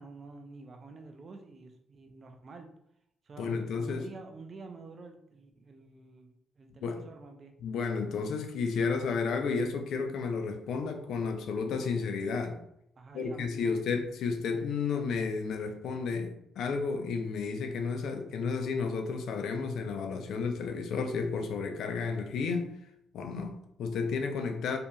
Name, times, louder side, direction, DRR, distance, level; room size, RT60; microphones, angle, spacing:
voice 1, 0.0-2.7 3.3-7.5 13.0-13.8, right 3 dB, 45° right, 0.4 m, -48 dB
voice 2, 3.4-4.1 6.8-7.0 7.6-12.6 13.1-22.7 23.1-24.8, left 5 dB, 75° left, 0.4 m, -32 dB
2.7 x 2.6 x 2.3 m
cardioid pair, 90°, 0 cm